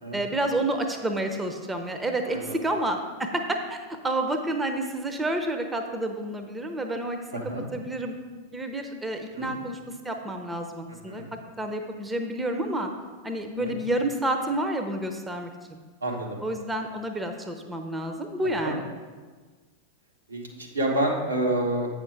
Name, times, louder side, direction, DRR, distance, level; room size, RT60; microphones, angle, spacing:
voice 1, 0.1-7.2 7.7-8.1 8.5-11.2 11.6-12.9 13.2-15.8 16.4-18.9, right 1 dB, 10° right, 5 dB, 0.7 m, -29 dB
voice 2, 2.2-2.6 7.3-7.7 9.4-9.5 11.1-11.3 13.6-13.8 16.0-16.4 18.6-18.7 20.3-21.9, right 1 dB, 80° right, -1 dB, 1.3 m, -28 dB
8.3 x 5.7 x 4.7 m, 1.4 s
figure-of-eight pair, 90°, 0 cm